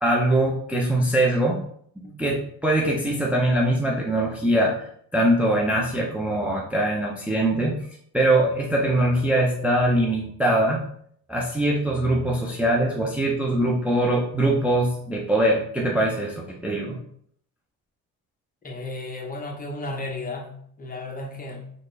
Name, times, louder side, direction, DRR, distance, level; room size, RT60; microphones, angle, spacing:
voice 1, 0.0-1.6 2.2-7.8 8.1-10.8 11.3-17.0, right 1 dB, 5° right, -3 dB, 0.5 m, -22 dB
voice 2, 18.6-21.7, left 2 dB, 25° left, 1 dB, 0.8 m, -34 dB
3.9 x 2.5 x 3.3 m, 0.65 s
cardioid pair, 105°, 36 cm